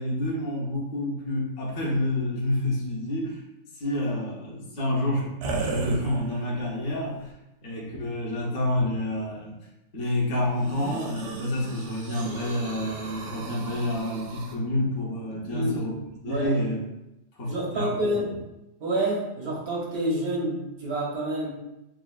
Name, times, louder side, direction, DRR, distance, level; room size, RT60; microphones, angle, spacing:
voice 1, 0.0-3.4 3.7-7.3 7.6-9.6 9.9-15.9 16.2-16.8 17.4-18.1, left 1 dB, 55° left, -4 dB, 1.3 m, -28 dB
sound 1, 5.4-6.7 7.3-7.4 10.5-14.5, right 4 dB, 85° right, 0.5 m, -36 dB
voice 2, 15.4-16.0 16.2-16.6 17.5-18.3 18.8-21.5, right 1 dB, 65° right, -5 dB, 1.6 m, -28 dB
6.3 x 2.4 x 2.3 m, 0.92 s
omnidirectional pair, 1.7 m